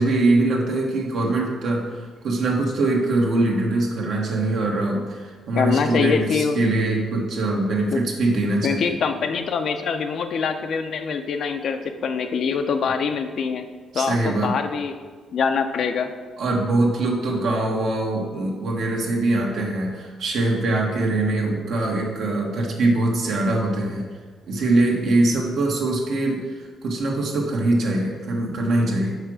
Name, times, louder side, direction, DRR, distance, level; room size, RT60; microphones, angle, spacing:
voice 1, 0.0-8.9 13.9-14.5 16.4-24.0 24.5-29.2, right 2 dB, 70° right, -1 dB, 1.4 m, -23 dB
voice 2, 5.5-6.6 7.9-8.0 8.6-13.7 13.9-15.0 15.3-16.1, left 6 dB, 60° left, 7 dB, 0.6 m, -24 dB
5.7 x 4.8 x 6.2 m, 1.5 s
cardioid pair, 90°, 0 cm